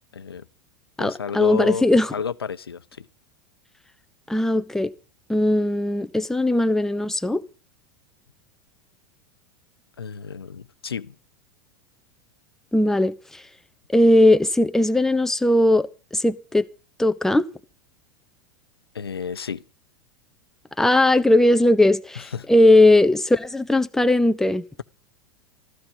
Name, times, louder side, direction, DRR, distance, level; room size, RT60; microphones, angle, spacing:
voice 1, 0.1-0.5 1.0-1.8 2.1-3.1 10.0-11.2 18.9-19.6 22.2-22.5, left 6 dB, 85° left, 0.9 m, -31 dB
voice 2, 1.0-2.1 4.3-4.9 5.3-7.4 12.7-13.4 13.9-15.9 16.1-16.7 17.0-17.5 20.8-24.6, left 1 dB, 5° left, 0.8 m, -18 dB
15.0 x 14.0 x 5.3 m
hypercardioid pair, 90°, 12 cm